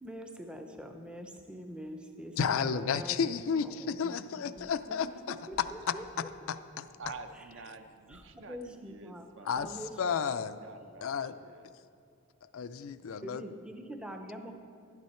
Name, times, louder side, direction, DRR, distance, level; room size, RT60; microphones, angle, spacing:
voice 1, 0.0-3.4 3.6-6.5 7.4-7.5 8.1-10.4 13.2-14.5, equal, 5° right, 5 dB, 0.6 m, -45 dB
voice 2, 2.4-5.1 6.5-6.9 9.5-9.7 10.0-10.6 11.0-11.3 12.5-13.4, left 6 dB, 65° left, 12 dB, 0.4 m, -32 dB
sound 1, 4.6-4.9 5.5-6.1 6.5-6.6 7.0-7.4 8.1-8.8 9.5-10.2, equal, 85° right, 1.7 m, -59 dB
voice 3, 7.0-11.7, right 3 dB, 55° right, 8 dB, 0.6 m, -49 dB
11.5 x 9.4 x 4.3 m, 2.4 s
head